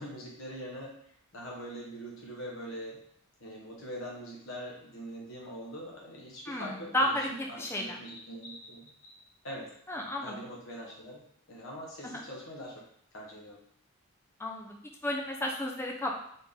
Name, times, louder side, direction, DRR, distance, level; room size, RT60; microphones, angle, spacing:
voice 1, 0.0-3.0 3.4-9.1 9.4-9.7 10.2-11.2 11.5-12.8 13.1-13.6, equal, 65° left, -2 dB, 1.1 m, -43 dB
voice 2, 6.5-8.0 9.9-10.4 12.1-12.2 14.4-16.2, left 1 dB, 10° left, 0 dB, 0.5 m, -33 dB
4.1 x 3.6 x 3.5 m, 0.67 s
head